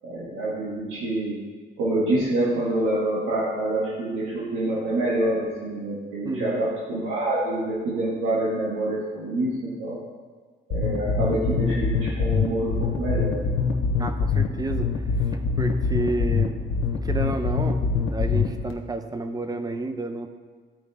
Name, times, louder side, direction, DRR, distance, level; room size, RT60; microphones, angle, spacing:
voice 1, 0.0-1.4 1.8-10.0 10.7-13.5, right 1 dB, 85° right, -7 dB, 1.8 m, -26 dB
voice 2, 6.2-6.6 14.0-14.9 15.6-16.6 16.9-20.3, right 2 dB, 20° right, 7 dB, 0.7 m, -30 dB
sound 1, 10.7-18.7, left 5 dB, 85° left, 1.0 m, -24 dB
14.0 x 4.6 x 3.6 m, 1.5 s
cardioid pair, 90°, 20 cm